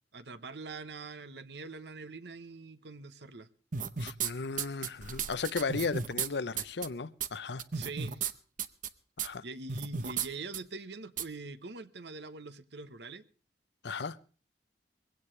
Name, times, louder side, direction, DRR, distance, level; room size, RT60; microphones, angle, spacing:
voice 1, 0.1-3.5 7.7-8.2 9.4-13.2, right 3 dB, 70° right, 1.0 m, -43 dB
sound 1, 3.7-4.3 4.6-6.3 6.6-6.9 7.2-7.3 7.6-8.3 8.6-8.9 9.2-9.3 9.7-10.3 10.5-10.6 11.2-11.3, right 7 dB, 45° right, 0.8 m, -34 dB
voice 2, 4.0-7.6 9.2-9.4 13.8-14.2, left 4 dB, 70° left, 0.7 m, -35 dB
21.5 x 16.5 x 3.2 m
head